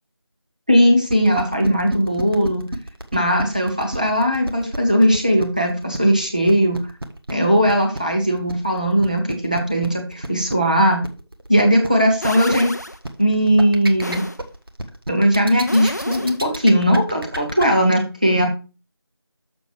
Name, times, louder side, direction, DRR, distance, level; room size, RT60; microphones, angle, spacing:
voice 1, 0.7-2.7 3.1-6.8 7.3-11.0 11.5-12.7 13.2-14.2 15.1-18.5, equal, 20° right, 1 dB, 0.9 m, -18 dB
sound 1, 1.1-17.7, right 1 dB, 60° right, 1.4 m, -31 dB
sound 2, 12.2-13.0 14.0-14.4 15.7-16.4 17.4-17.6, left 1 dB, 40° left, 0.5 m, -30 dB
7.0 x 5.7 x 4.6 m, 0.32 s
figure-of-eight pair, 175°, 13 cm